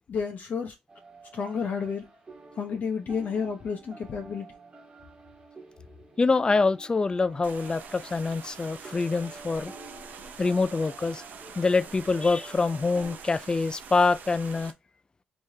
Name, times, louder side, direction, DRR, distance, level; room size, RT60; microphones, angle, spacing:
voice 1, 0.1-0.7 1.3-2.1 2.6-4.5, left 6 dB, 55° left, 0.8 m, -31 dB
sound 1, 0.9-13.2, right 3 dB, 35° right, 1.3 m, -49 dB
voice 2, 6.2-9.7 10.4-11.2 11.6-14.7, left 3 dB, 25° left, 0.3 m, -25 dB
sound 2, 7.4-14.7, right 6 dB, 65° right, 0.6 m, -45 dB
3.5 x 3.3 x 2.7 m
supercardioid pair, 70°, 3 cm